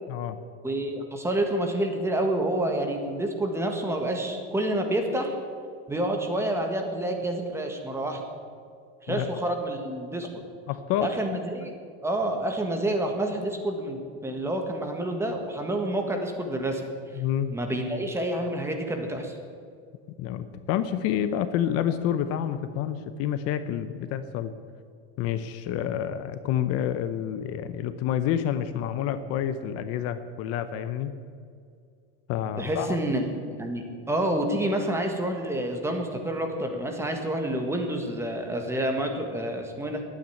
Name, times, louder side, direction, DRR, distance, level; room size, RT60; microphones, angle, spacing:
voice 1, 0.6-5.3 5.9-8.2 9.0-10.4 11.0-11.7 12.0-16.8 17.5-19.4 32.6-40.0, right 1 dB, 10° right, 3 dB, 1.6 m, -28 dB
voice 2, 10.7-11.1 17.1-17.5 20.2-24.5 25.2-31.1 32.3-33.0, left 10 dB, 55° left, 11 dB, 0.8 m, -28 dB
11.5 x 9.3 x 8.5 m, 2.3 s
cardioid pair, 145°, 29 cm